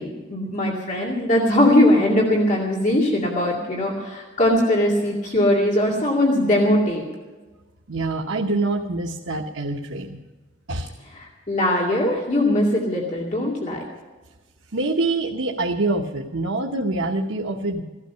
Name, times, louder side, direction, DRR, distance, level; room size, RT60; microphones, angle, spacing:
voice 1, 0.0-7.0 11.1-13.8, left 1 dB, 40° left, -2 dB, 2.4 m, -20 dB
voice 2, 7.9-10.2 10.7-10.9 14.7-17.8, right 2 dB, 90° right, 1 dB, 1.1 m, -25 dB
16.5 x 12.5 x 5.7 m, 1.2 s
head